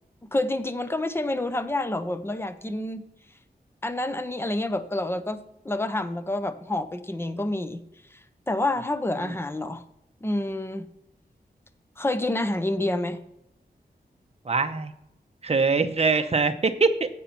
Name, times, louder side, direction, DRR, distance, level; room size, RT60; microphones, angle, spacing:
voice 1, 0.3-3.0 3.8-5.4 5.6-7.8 8.5-9.8 10.2-10.9 12.0-13.2, left 1 dB, 15° left, 11 dB, 0.7 m, -28 dB
voice 2, 14.4-14.9 15.4-17.1, right 4 dB, 40° right, 8 dB, 0.8 m, -23 dB
9.5 x 8.3 x 4.5 m, 0.84 s
wide cardioid pair, 125°, 17 cm